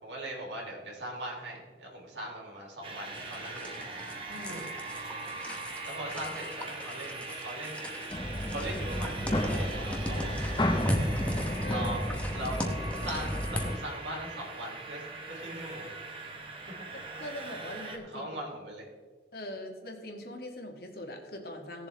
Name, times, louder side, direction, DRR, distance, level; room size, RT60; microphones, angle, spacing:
voice 1, 0.0-3.8 4.5-4.6 4.9-5.1 5.8-7.8 8.2-11.1 11.7-15.9 16.7-16.8 18.0-18.9, right 1 dB, 90° right, -1 dB, 3.2 m, -40 dB
sound 1, 2.8-18.0, right 3 dB, 30° right, 1.3 m, -41 dB
sound 2, 3.1-13.8, left 1 dB, 5° left, 1.0 m, -39 dB
voice 2, 4.3-4.7 11.6-11.9 16.9-18.3 19.3-21.9, left 1 dB, 55° left, 2 dB, 1.7 m, -42 dB
sound 3, 8.1-13.8, left 1 dB, 25° left, 1.1 m, -32 dB
17.5 x 7.2 x 3.4 m, 1.5 s
head